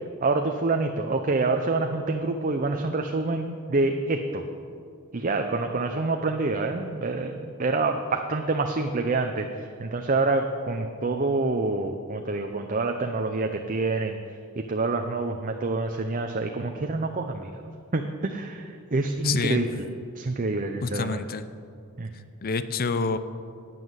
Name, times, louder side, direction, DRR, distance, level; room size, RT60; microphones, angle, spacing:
voice 1, 0.2-4.4 5.1-14.2 14.6-17.5 17.9-19.7 20.1-21.2 22.0-22.1, right 3 dB, 40° right, 5 dB, 0.6 m, -27 dB
voice 2, 19.2-19.7 20.8-21.5 22.4-23.2, left 4 dB, 45° left, 12 dB, 0.6 m, -27 dB
11.5 x 9.3 x 7.9 m, 2.3 s
head